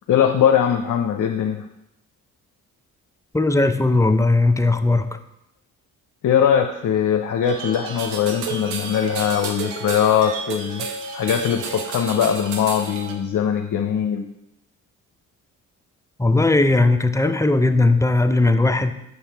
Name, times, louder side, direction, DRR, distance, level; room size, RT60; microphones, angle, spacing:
voice 1, 0.1-1.7 6.2-10.9 11.1-14.3, left 8 dB, 55° left, 4 dB, 0.7 m, -21 dB
voice 2, 3.3-5.1 16.2-18.9, left 2 dB, 10° left, 8 dB, 0.6 m, -18 dB
sound 1, 7.4-13.1, right 5 dB, 90° right, 0.8 m, -31 dB
8.0 x 5.6 x 3.5 m, 0.84 s
supercardioid pair, 55°, 38 cm